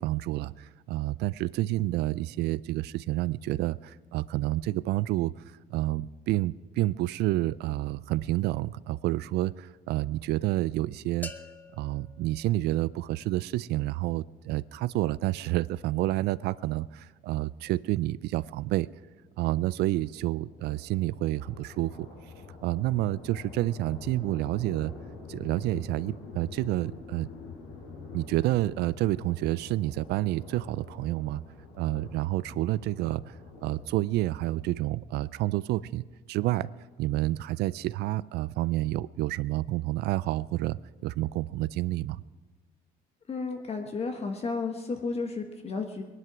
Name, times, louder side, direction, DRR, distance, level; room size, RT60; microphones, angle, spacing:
voice 1, 0.0-5.4 5.7-11.3 11.8-18.9 19.4-22.1 22.6-24.9 25.3-27.3 28.1-31.4 31.7-33.4 33.6-36.0 36.3-36.7 37.0-42.2, right 16 dB, 75° right, 19 dB, 0.4 m, -29 dB
sound 1, 11.2-13.2, left 3 dB, 10° left, 0.8 m, -46 dB
sound 2, 19.1-35.2, left 4 dB, 85° left, 5.8 m, -46 dB
voice 2, 43.3-46.0, left 4 dB, 35° left, 4 dB, 1.3 m, -32 dB
20.0 x 11.0 x 6.1 m, 1.3 s
cardioid pair, 110°, 17 cm